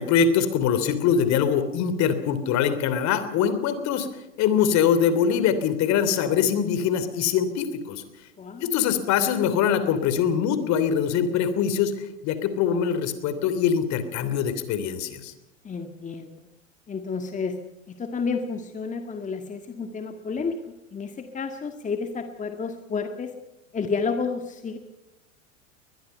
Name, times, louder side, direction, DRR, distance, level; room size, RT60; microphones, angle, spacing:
voice 1, 0.0-4.1 4.4-8.0 8.6-15.3, left 7 dB, 45° left, 11 dB, 3.2 m, -23 dB
voice 2, 8.4-8.7 15.6-16.5 16.9-17.6 17.9-20.6 20.9-23.3 23.7-24.8, left 5 dB, 20° left, 6 dB, 1.8 m, -30 dB
22.0 x 21.0 x 5.6 m, 0.98 s
hypercardioid pair, 90°, 38 cm